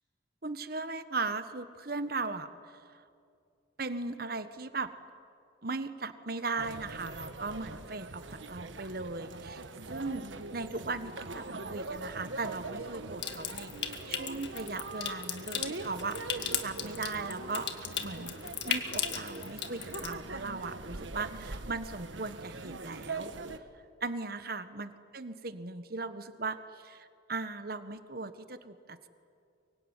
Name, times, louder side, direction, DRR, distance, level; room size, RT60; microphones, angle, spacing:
voice 1, 0.4-3.0 3.8-4.9 5.6-9.6 9.9-17.7 18.0-18.3 18.6-23.6 24.0-29.1, right 3 dB, 50° right, 11 dB, 1.4 m, -38 dB
sound 1, 6.6-23.6, right 3 dB, 85° right, 1.4 m, -42 dB
Water tap faucet / Sink (filling or washing) / Trickle dribble, 13.2-20.1, left 8 dB, 65° left, 2.0 m, -37 dB
24.0 x 23.5 x 9.8 m, 2.4 s
head